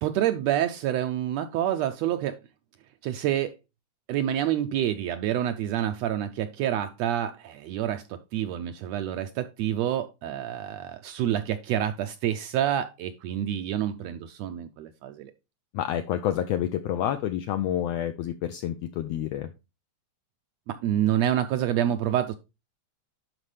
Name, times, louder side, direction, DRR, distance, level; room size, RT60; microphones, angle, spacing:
voice 1, 0.0-2.4 3.0-3.5 4.1-15.3 20.7-22.3, right 11 dB, 80° right, 9 dB, 1.5 m, -28 dB
voice 2, 15.7-19.5, left 11 dB, 85° left, 9 dB, 1.4 m, -28 dB
11.0 x 4.5 x 3.3 m, 0.26 s
omnidirectional pair, 3.5 m